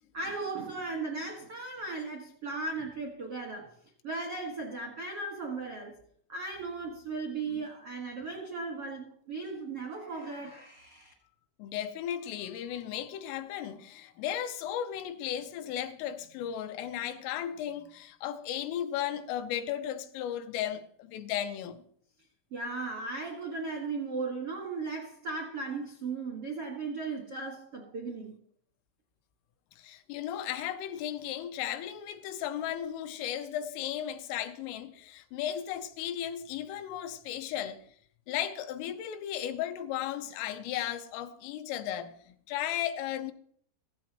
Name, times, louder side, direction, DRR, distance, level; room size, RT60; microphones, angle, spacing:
voice 1, 0.1-3.7 4.0-5.9 6.3-11.1 22.5-28.4, right 3 dB, 80° right, 1.3 m, -37 dB
voice 2, 11.6-21.8 29.8-37.8 38.3-43.3, left 10 dB, 85° left, 3.3 m, -35 dB
15.5 x 15.5 x 3.0 m
omnidirectional pair, 5.9 m